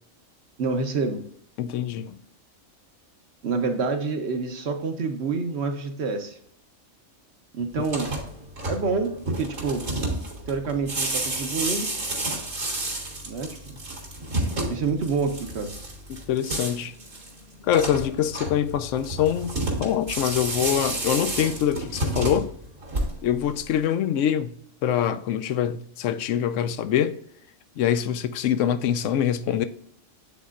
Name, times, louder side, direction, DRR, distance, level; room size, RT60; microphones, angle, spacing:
voice 1, 0.6-1.2 3.4-6.4 7.5-8.1 8.7-9.8 10.5-11.9 13.3-13.8 14.7-15.7, right 4 dB, 55° right, 1.1 m, -27 dB
voice 2, 1.6-2.2 16.1-16.9 17.7-22.5 23.2-24.5 24.8-27.2 27.8-29.6, left 10 dB, 75° left, 0.9 m, -24 dB
sound 1, 7.8-23.4, right 2 dB, 75° right, 2.4 m, -30 dB
9.3 x 4.2 x 2.5 m
omnidirectional pair, 1.4 m